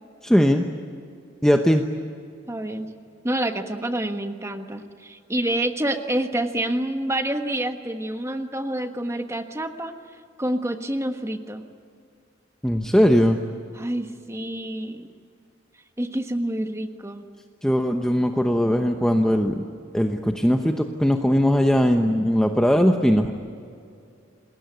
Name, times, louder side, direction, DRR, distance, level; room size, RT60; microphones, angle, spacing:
voice 1, 0.2-0.7 1.4-1.8 12.6-13.4 17.6-19.7 19.9-23.3, equal, 5° left, 4 dB, 0.9 m, -19 dB
voice 2, 2.5-2.9 3.2-9.9 10.4-11.6 13.7-15.1 16.0-17.2, right 1 dB, 15° right, 6 dB, 1.4 m, -27 dB
28.0 x 20.5 x 9.3 m, 2.4 s
head